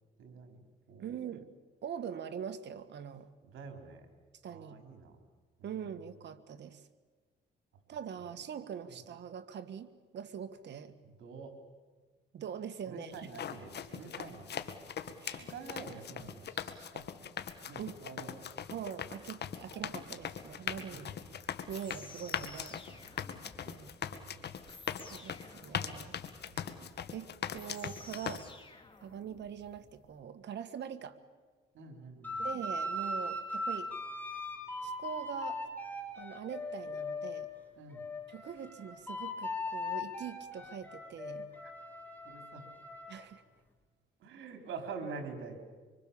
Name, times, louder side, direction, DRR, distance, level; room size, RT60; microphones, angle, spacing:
voice 1, 0.2-0.6 0.9-1.2 3.4-4.1 4.5-5.2 5.6-5.8 11.0-11.6 12.9-14.5 15.5-17.3 17.7-18.6 20.9-21.2 22.8-23.0 23.3-23.6 24.1-24.5 26.4-26.6 31.7-32.5 37.8-38.0 42.2-42.6 44.2-45.6, right 4 dB, 80° right, 5 dB, 4.2 m, -47 dB
voice 2, 1.0-1.5 1.8-3.3 4.4-4.8 5.6-6.8 7.9-10.9 12.3-13.3 15.2-15.5 17.8-18.0 18.7-21.1 21.7-22.8 23.6-23.9 25.1-26.1 26.5-28.5 29.0-31.2 32.4-33.9 34.8-35.6 36.2-37.5 38.3-41.5 43.1-43.4, right 8 dB, 60° right, 9 dB, 1.8 m, -43 dB
sound 1, 13.1-28.4, left 8 dB, 55° left, 1.7 m, -41 dB
sound 2, 19.7-30.1, left 3 dB, 25° left, 3.3 m, -55 dB
sound 3, 32.2-37.5 37.9-43.2, left 1 dB, 10° left, 4.7 m, -39 dB
25.0 x 25.0 x 7.2 m, 1.4 s
cardioid pair, 90°, 20 cm